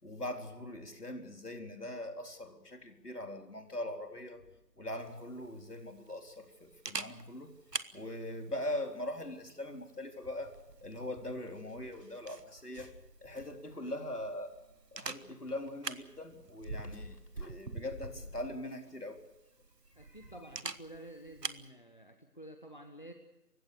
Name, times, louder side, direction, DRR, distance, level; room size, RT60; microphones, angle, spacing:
voice 1, 0.0-4.4 4.8-7.5 7.9-13.0 13.2-14.6 14.9-19.2 20.0-20.3, left 1 dB, 70° left, 4 dB, 4.1 m, -41 dB
Camera, 5.0-21.7, right 3 dB, 80° right, 1.4 m, -47 dB
voice 2, 20.0-23.1, right 1 dB, 30° left, 5 dB, 1.3 m, -50 dB
28.5 x 16.5 x 6.7 m, 0.98 s
figure-of-eight pair, 175°, 48 cm